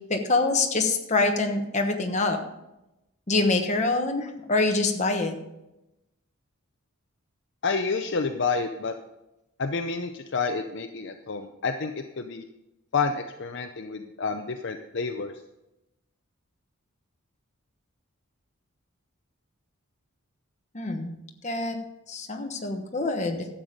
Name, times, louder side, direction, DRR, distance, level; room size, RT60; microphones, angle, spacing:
voice 1, 0.1-2.4 3.3-5.3 20.7-21.1 21.4-21.8 22.1-23.5, left 3 dB, 30° left, 3 dB, 1.2 m, -25 dB
voice 2, 7.6-8.9 9.6-12.4 12.9-15.3, left 4 dB, 55° left, 6 dB, 0.6 m, -29 dB
12.0 x 7.7 x 5.1 m, 0.92 s
head